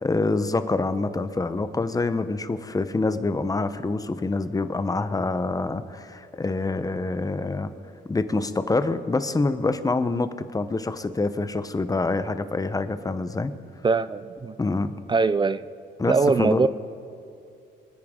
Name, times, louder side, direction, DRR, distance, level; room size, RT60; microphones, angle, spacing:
voice 1, 0.0-7.7 8.1-13.5 14.6-15.0 16.0-16.7, left 3 dB, 20° left, 11 dB, 0.7 m, -26 dB
voice 2, 13.8-14.6 15.1-15.6 16.1-16.7, right 4 dB, 25° right, 15 dB, 0.4 m, -21 dB
25.5 x 9.4 x 3.7 m, 2.5 s
cardioid pair, 90°, 20 cm